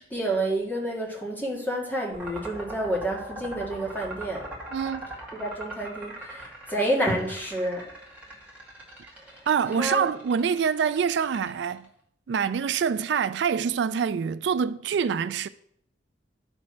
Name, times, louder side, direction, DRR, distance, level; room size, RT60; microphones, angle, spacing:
voice 1, 0.0-4.5 5.3-7.9 9.8-10.1, right 1 dB, 10° left, 1.9 m, -29 dB
sound 1, 2.1-11.9, right 1 dB, 10° right, 2.2 m, -41 dB
voice 2, 4.7-5.1 9.0-9.1 9.5-11.9 12.3-15.5, right 7 dB, 65° right, 0.3 m, -26 dB
10.5 x 4.5 x 6.3 m
head